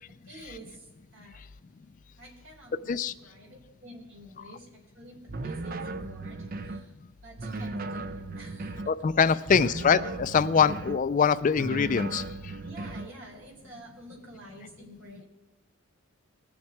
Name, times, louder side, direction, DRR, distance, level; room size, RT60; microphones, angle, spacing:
voice 1, 0.2-1.4 2.2-6.9 7.2-8.9 9.2-9.5 12.6-15.2, right 1 dB, 70° right, -2 dB, 4.4 m, -49 dB
sound 1, 5.3-6.9 7.4-9.0 9.5-11.0 11.6-13.1, right 2 dB, 40° right, 0.6 m, -36 dB
voice 2, 8.9-12.2, left 6 dB, 40° left, 15 dB, 0.3 m, -23 dB
20.0 x 7.2 x 4.8 m, 1.1 s
head